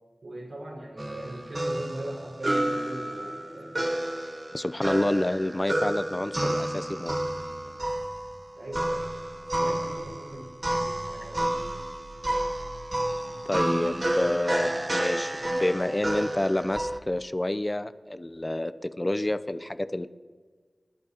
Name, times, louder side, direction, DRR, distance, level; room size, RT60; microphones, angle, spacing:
voice 1, 0.2-3.9 8.6-9.0 9.6-11.6, right 1 dB, 85° right, -4 dB, 5.0 m, -40 dB
sound 1, 1.0-17.0, right 1 dB, 40° right, 0.9 m, -30 dB
voice 2, 4.5-7.2 13.5-20.1, left 1 dB, 30° left, 12 dB, 0.6 m, -28 dB
29.5 x 11.5 x 2.9 m, 1.4 s
cardioid pair, 45°, 0 cm